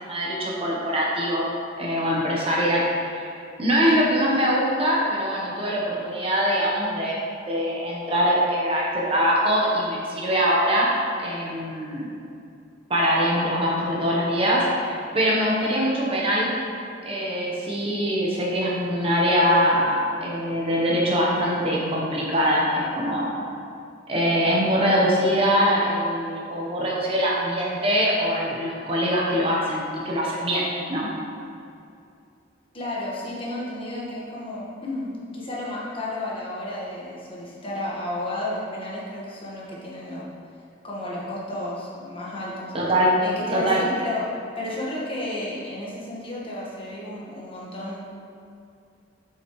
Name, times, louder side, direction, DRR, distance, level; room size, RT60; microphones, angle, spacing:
voice 1, 0.0-1.4 1.8-3.3 3.6-10.9 11.2-12.2 12.9-16.5 17.0-23.3 24.1-31.1 42.7-43.1 43.5-43.8, equal, 30° right, -4 dB, 0.9 m, -23 dB
voice 2, 32.7-40.3 40.8-42.7 43.2-44.3 44.6-48.0, left 1 dB, 30° left, -6 dB, 1.4 m, -32 dB
7.9 x 5.8 x 3.1 m, 2.5 s
head